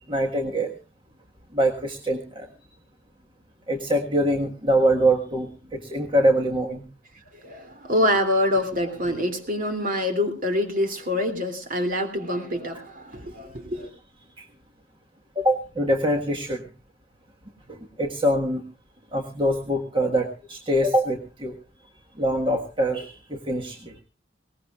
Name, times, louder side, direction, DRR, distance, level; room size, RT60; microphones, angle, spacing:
voice 1, 0.1-0.7 1.5-2.5 3.7-6.9 14.4-14.5 15.3-16.6 17.7-18.6 19.1-21.5 22.2-23.9, right 1 dB, 30° right, 1 dB, 1.5 m, -24 dB
voice 2, 7.3-13.9, left 1 dB, 50° right, 6 dB, 2.9 m, -25 dB
21.0 x 18.5 x 2.4 m, 0.33 s
head